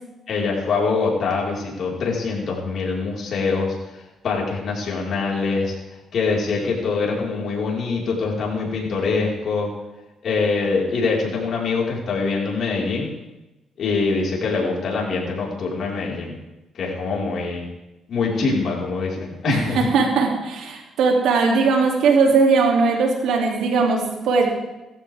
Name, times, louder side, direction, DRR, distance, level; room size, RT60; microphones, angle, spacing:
voice 1, 0.3-5.7 6.1-9.7 10.2-13.1 13.8-16.3 16.8-17.6 18.1-19.8, left 4 dB, 60° left, -3 dB, 5.0 m, -24 dB
voice 2, 19.5-24.5, right 4 dB, 85° right, 1 dB, 3.0 m, -19 dB
17.5 x 14.5 x 3.7 m, 1.0 s
cardioid pair, 90°, 0 cm